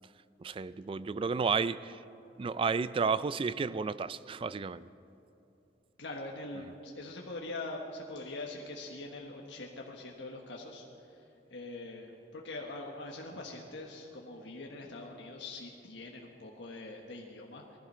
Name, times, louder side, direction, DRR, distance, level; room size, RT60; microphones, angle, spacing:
voice 1, 0.4-2.0 2.4-4.9, right 5 dB, 30° right, 16 dB, 0.3 m, -32 dB
voice 2, 6.0-17.8, left 2 dB, 85° left, 0 dB, 1.3 m, -43 dB
20.5 x 14.5 x 4.3 m, 2.8 s
head